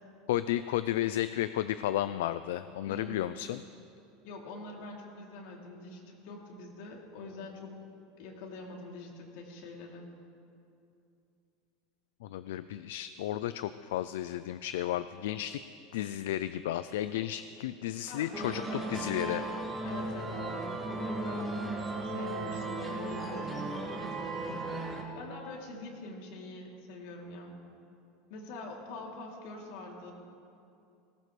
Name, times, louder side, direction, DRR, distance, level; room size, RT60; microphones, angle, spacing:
voice 1, 0.3-3.6 12.2-15.6 15.9-19.4, left 13 dB, 85° left, 13 dB, 0.4 m, -33 dB
voice 2, 2.8-3.3 4.2-7.8 8.2-10.1 18.0-19.0 19.8-27.6 28.3-30.1, left 2 dB, 65° left, -1 dB, 3.0 m, -45 dB
sound 1, 18.3-25.0, right 2 dB, 10° right, 2.1 m, -36 dB
19.5 x 18.0 x 3.3 m, 2.6 s
supercardioid pair, 155°, 0 cm